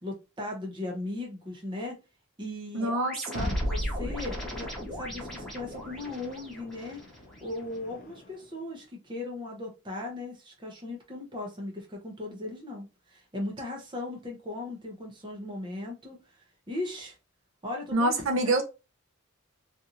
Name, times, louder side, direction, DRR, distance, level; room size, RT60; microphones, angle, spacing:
voice 1, 0.0-2.0 2.4-2.9 3.4-7.0 7.4-17.2 17.6-18.1, left 2 dB, 20° right, 0 dB, 0.7 m, -38 dB
voice 2, 2.7-3.5 17.9-18.6, right 2 dB, 70° right, 3 dB, 0.6 m, -26 dB
sound 1, 2.8-7.8, equal, ahead, 1.1 m, -41 dB
sound 2, 3.3-8.4, equal, 40° left, 0.5 m, -36 dB
2.8 x 2.5 x 2.5 m, 0.28 s
head